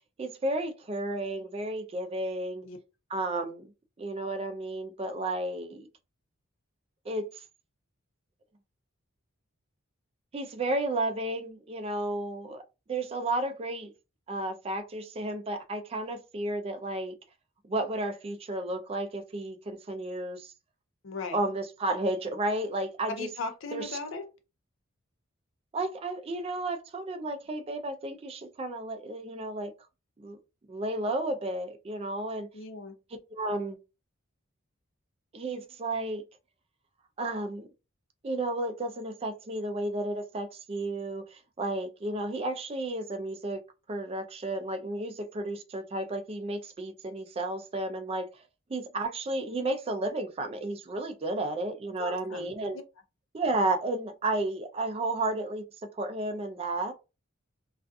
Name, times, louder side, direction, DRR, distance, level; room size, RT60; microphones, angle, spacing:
voice 1, 0.2-2.6 3.1-3.6 4.0-5.9 7.1-7.4 10.3-12.6 12.9-13.9 14.3-17.1 17.7-20.5 21.3-23.3 23.7-24.0 25.7-29.7 30.2-30.4 30.7-32.5 33.3-33.8 35.3-36.2 37.2-37.7 38.2-43.6 43.9-48.4 48.7-52.8 53.3-55.6 56.0-56.9, right 2 dB, 30° right, 0.3 m, -32 dB
voice 2, 21.0-21.4 23.1-24.3 32.5-32.9 52.0-52.5, left 3 dB, 65° left, 0.5 m, -37 dB
2.4 x 2.3 x 2.5 m
head